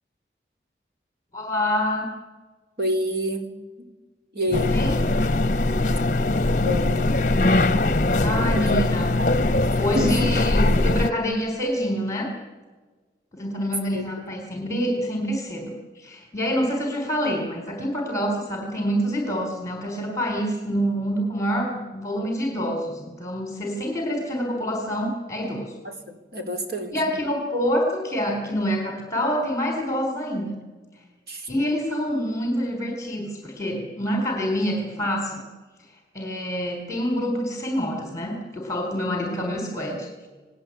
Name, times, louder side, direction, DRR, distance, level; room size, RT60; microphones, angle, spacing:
voice 1, 1.3-2.1 4.7-5.0 8.2-9.2 9.8-12.3 13.3-25.7 26.9-30.6 31.5-35.4 36.1-40.3, equal, 20° left, 2 dB, 4.2 m, -26 dB
voice 2, 2.8-3.5 4.3-4.7 6.5-7.1 8.6-8.8 9.2-9.4 9.9-10.3 13.9-14.0 25.8-27.0 31.3-31.5, left 1 dB, 65° right, 5 dB, 4.1 m, -28 dB
sound 1, 4.5-11.1, left 2 dB, 45° left, 0.9 m, -21 dB
29.0 x 19.5 x 8.7 m, 1.3 s
head